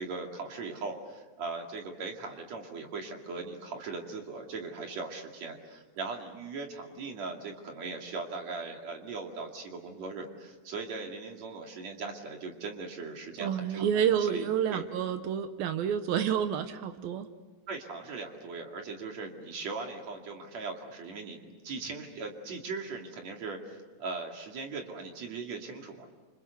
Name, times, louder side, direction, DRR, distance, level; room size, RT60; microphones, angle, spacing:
voice 1, 0.0-13.9 14.2-14.8 17.7-21.4 21.6-26.1, right 4 dB, 45° right, 2 dB, 3.2 m, -39 dB
voice 2, 13.4-17.3, right 8 dB, 70° right, 9 dB, 2.6 m, -29 dB
29.0 x 26.5 x 6.8 m, 1.3 s
omnidirectional pair, 4.7 m